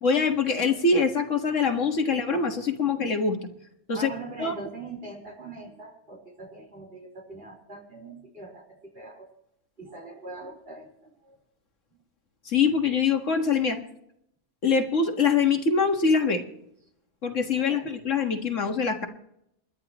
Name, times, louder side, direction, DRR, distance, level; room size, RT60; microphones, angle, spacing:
voice 1, 0.0-3.4 3.9-4.1 4.4-4.5 12.5-13.8 14.6-16.4 17.2-19.1, left 5 dB, 80° left, 4 dB, 2.0 m, -24 dB
voice 2, 3.9-9.3 9.8-11.4 17.6-17.9, right 2 dB, 50° right, 0 dB, 4.6 m, -42 dB
27.5 x 11.5 x 3.0 m, 0.76 s
omnidirectional pair, 1.3 m